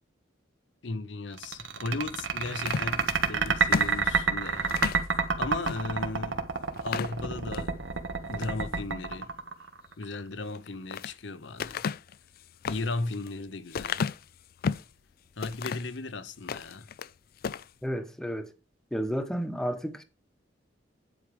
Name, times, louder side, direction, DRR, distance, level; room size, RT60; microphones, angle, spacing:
voice 1, 0.8-4.8 5.1-6.5 6.8-7.7 8.3-9.3 10.0-11.8 12.7-14.1 15.4-16.9, left 3 dB, 70° left, 0.8 m, -36 dB
sound 1, 1.4-10.0, right 5 dB, 85° right, 1.4 m, -28 dB
sound 2, 2.5-5.1 5.6-5.8 6.2-6.3 6.7-7.7 8.2-8.6 10.4-11.1 11.6-14.9 15.4-16.0 16.4-17.1 17.4-17.7, left 6 dB, 50° left, 0.4 m, -34 dB
voice 2, 17.8-18.5 18.9-20.0, equal, 5° left, 1.0 m, -31 dB
9.9 x 5.1 x 4.9 m
head